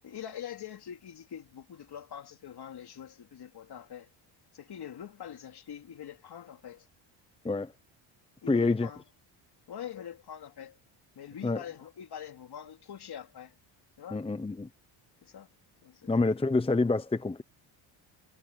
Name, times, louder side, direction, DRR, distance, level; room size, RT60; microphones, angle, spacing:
voice 1, 0.0-4.1 4.5-6.9 8.4-9.0 9.7-10.8 11.1-13.6 14.0-14.2 15.2-15.5 15.8-16.1, left 9 dB, 50° left, 3.4 m, -44 dB
voice 2, 8.5-8.9 11.4-11.6 14.1-14.7 16.1-17.4, left 3 dB, 10° left, 0.9 m, -27 dB
cardioid pair, 100°, 50 cm